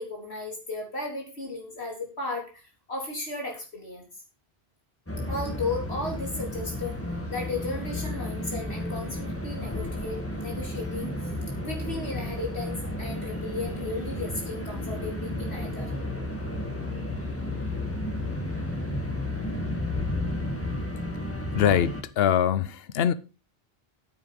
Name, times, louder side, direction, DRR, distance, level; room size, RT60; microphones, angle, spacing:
voice 1, 0.0-2.6 2.9-4.0 5.3-7.0 7.3-11.1 11.6-15.9, left 2 dB, 85° left, 4.0 m, -35 dB
sound 1, 5.1-22.0, left 1 dB, 15° left, 2.2 m, -32 dB
voice 2, 21.5-23.1, left 9 dB, 70° left, 1.0 m, -23 dB
9.4 x 9.0 x 5.2 m
omnidirectional pair, 1.1 m